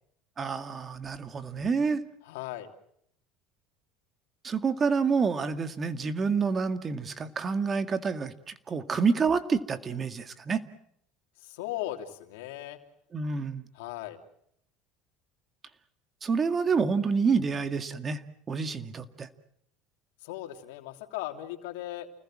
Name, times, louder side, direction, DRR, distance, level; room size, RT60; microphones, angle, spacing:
voice 1, 0.4-2.0 4.4-10.6 13.1-13.6 16.2-18.2 18.5-19.3, right 5 dB, 30° right, 10 dB, 2.0 m, -28 dB
voice 2, 2.2-2.7 11.4-12.8 13.7-14.2 20.2-22.1, left 14 dB, 80° left, 5 dB, 2.9 m, -37 dB
30.0 x 20.0 x 7.5 m, 0.71 s
supercardioid pair, 100°, 0 cm